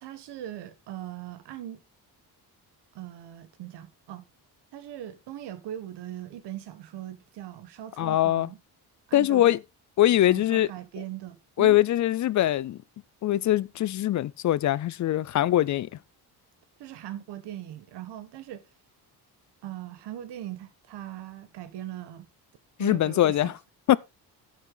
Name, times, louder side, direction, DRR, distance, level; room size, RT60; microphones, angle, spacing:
voice 1, 0.0-1.8 2.9-4.3 4.7-8.6 9.1-9.4 10.3-11.8 16.8-18.6 19.6-22.3 22.8-23.5, right 12 dB, 90° right, 1.5 m, -40 dB
voice 2, 8.0-8.5 9.1-9.6 10.0-10.7 11.6-12.8 13.2-15.9 22.8-23.5 23.9-24.0, left 13 dB, 50° left, 0.4 m, -22 dB
9.3 x 8.8 x 3.8 m
cardioid pair, 130°, 40 cm